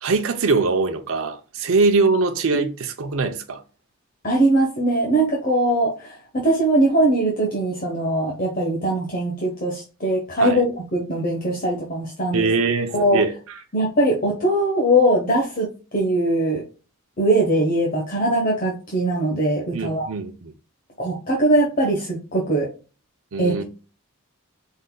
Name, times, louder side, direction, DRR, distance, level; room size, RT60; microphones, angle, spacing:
voice 1, 0.0-3.6 10.4-10.6 12.3-13.3 19.7-20.5 23.3-23.6, right 3 dB, 70° right, 0.6 m, -22 dB
voice 2, 4.2-12.5 12.9-13.2 13.7-15.7 15.9-16.6 17.2-20.1 21.0-22.7 23.4-23.5, right 1 dB, 40° left, 1.1 m, -21 dB
5.2 x 4.0 x 2.2 m
head